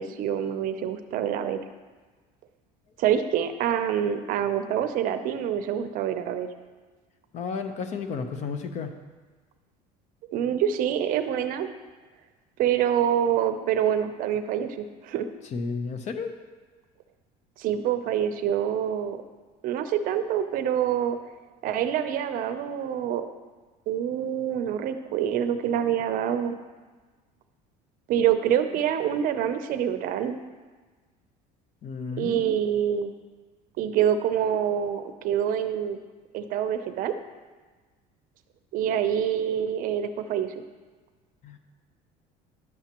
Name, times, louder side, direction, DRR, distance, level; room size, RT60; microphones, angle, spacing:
voice 1, 0.0-1.6 3.0-6.5 10.3-11.7 12.6-15.3 17.6-19.2 19.6-21.2 21.6-23.3 23.9-26.6 28.1-30.4 32.2-33.1 33.8-36.0 36.3-37.1 38.7-40.5, right 9 dB, 55° right, 9 dB, 0.6 m, -26 dB
voice 2, 7.3-8.9 15.5-16.3 31.8-32.6 41.4-41.6, left 5 dB, 45° left, 7 dB, 0.7 m, -32 dB
11.0 x 7.0 x 2.9 m, 1.4 s
cardioid pair, 130°, 17 cm